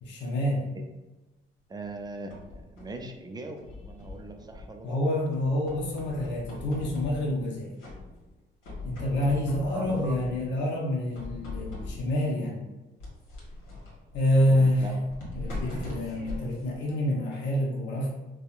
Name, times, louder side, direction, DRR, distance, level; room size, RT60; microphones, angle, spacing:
voice 1, 0.0-0.7 4.8-7.7 8.8-12.6 14.1-14.9 15.3-18.1, left 1 dB, 65° left, -3 dB, 0.8 m, -27 dB
voice 2, 1.7-5.0 9.7-10.2 14.5-15.0, right 2 dB, 20° right, 4 dB, 0.4 m, -39 dB
sound 1, 1.8-3.0 3.6-4.9 5.3-7.5 7.8-8.4 8.6-10.6 11.1-12.2 13.0-17.5, left 2 dB, 80° left, 1.2 m, -41 dB
3.5 x 2.1 x 2.4 m, 1.1 s
cardioid pair, 90°, 20 cm